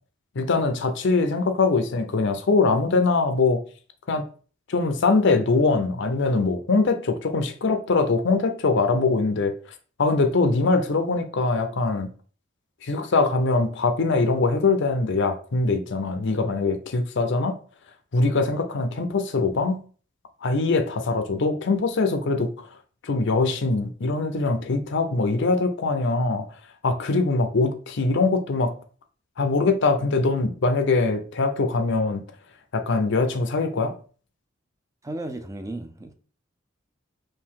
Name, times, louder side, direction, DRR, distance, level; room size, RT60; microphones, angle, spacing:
voice 1, 0.4-3.6 4.1-4.3 4.7-9.5 10.0-12.1 12.8-17.6 18.1-19.8 20.4-22.7 23.0-26.5 26.8-28.8 29.4-32.2 32.7-33.9, left 3 dB, 65° left, 0.6 m, -22 dB
voice 2, 35.0-36.1, right 1 dB, 15° right, 0.4 m, -34 dB
4.6 x 2.7 x 3.6 m
head